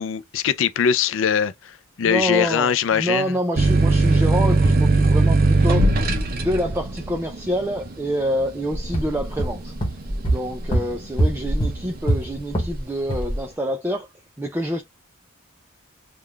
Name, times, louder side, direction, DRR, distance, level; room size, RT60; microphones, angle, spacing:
voice 1, 0.0-3.3, left 8 dB, 70° left, 0.4 m, -22 dB
voice 2, 2.0-9.7 10.2-14.1 14.4-14.8, equal, 10° right, 0.4 m, -26 dB
sound 1, 3.6-10.8 11.3-12.0, right 2 dB, 45° right, 0.7 m, -20 dB
sound 2, 8.7-12.8 13.1-13.4, right 1 dB, 25° left, 1.1 m, -24 dB
3.7 x 2.3 x 3.2 m
head